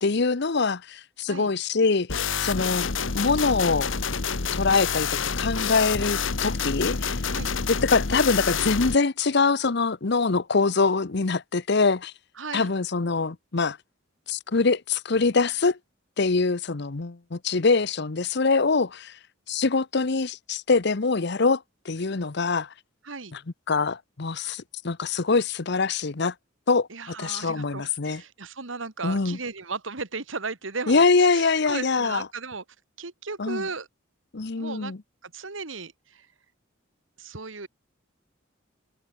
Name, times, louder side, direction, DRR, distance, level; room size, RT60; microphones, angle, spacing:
voice 1, 0.0-2.9 3.1-3.9 4.5-5.1 5.4-7.2 7.7-12.1 12.5-13.8 14.3-15.8 16.2-19.1 19.5-22.7 23.3-23.4 23.7-26.3 26.7-28.2 29.0-29.4 30.9-32.2 33.4-33.6 34.3-35.0, left 4 dB, 60° left, 0.9 m, -24 dB
sound 1, 2.1-8.9, left 5 dB, 80° left, 1.3 m, -28 dB
voice 2, 12.4-12.7 23.0-23.3 26.9-32.6 33.0-33.9 34.5-34.9 35.2-36.3 37.2-37.7, right 4 dB, 85° right, 2.1 m, -36 dB
head